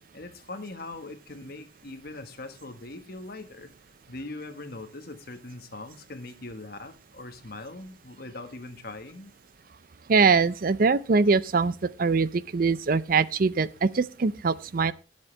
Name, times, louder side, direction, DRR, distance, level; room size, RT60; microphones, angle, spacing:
voice 1, 0.1-3.7 4.1-9.3, left 2 dB, 55° left, 1.3 m, -41 dB
voice 2, 10.1-11.7 12.0-14.9, right 4 dB, 50° right, 0.5 m, -22 dB
18.5 x 7.4 x 3.3 m
head